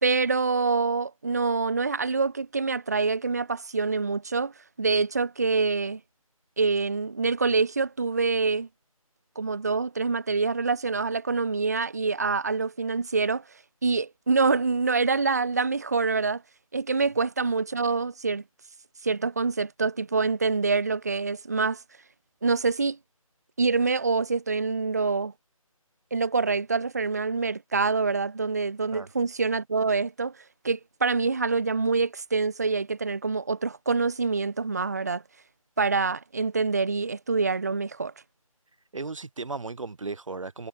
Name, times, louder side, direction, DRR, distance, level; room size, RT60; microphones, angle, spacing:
voice 1, 0.0-4.5 4.8-6.0 6.6-8.7 9.4-13.4 13.8-16.4 16.7-18.4 19.0-21.8 22.4-23.0 23.6-25.3 26.1-30.3 30.6-35.2 35.8-38.1, right 4 dB, 30° right, 0.8 m, -26 dB
voice 2, 38.9-40.7, right 3 dB, 60° right, 1.3 m, -35 dB
figure-of-eight pair, 175°, 19 cm